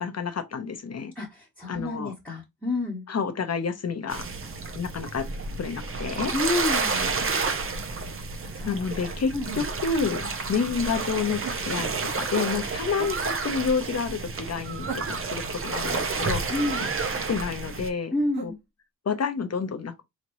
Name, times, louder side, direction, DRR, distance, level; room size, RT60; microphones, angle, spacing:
voice 1, 0.0-1.1 1.7-2.1 3.1-4.3 4.7-5.3 5.6-6.3 8.7-11.4 11.7-16.4 17.3-18.1 18.4-18.5 19.1-20.0, left 5 dB, 40° left, 0.7 m, -29 dB
voice 2, 1.1-3.0 6.3-7.1 8.5-8.7 9.3-9.5 16.5-16.8 18.1-18.5, left 2 dB, 5° left, 1.1 m, -29 dB
sound 1, 4.1-17.9, right 4 dB, 35° right, 0.6 m, -30 dB
sound 2, 9.4-9.8 11.4-11.7 13.0-13.2 14.9-15.5 16.8-17.1 18.3-18.6, right 5 dB, 75° right, 1.2 m, -37 dB
4.2 x 3.0 x 2.6 m
wide cardioid pair, 105°, 38 cm